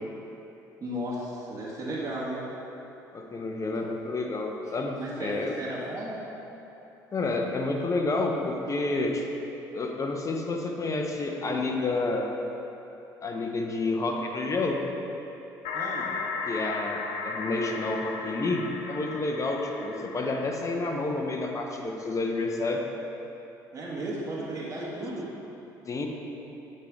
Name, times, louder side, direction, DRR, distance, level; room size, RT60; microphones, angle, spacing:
voice 1, 0.8-2.4 5.0-6.2 15.7-16.1 23.7-25.3, right 1 dB, 30° right, -8 dB, 1.3 m, -34 dB
voice 2, 3.1-5.5 7.1-9.3 9.7-12.3 13.2-14.8 16.5-22.8 25.9-26.1, left 2 dB, 35° left, 2 dB, 0.7 m, -29 dB
sound 1, 15.6-21.3, left 4 dB, 70° left, 0.5 m, -35 dB
8.4 x 3.2 x 3.5 m, 3.0 s
hypercardioid pair, 60°, 9 cm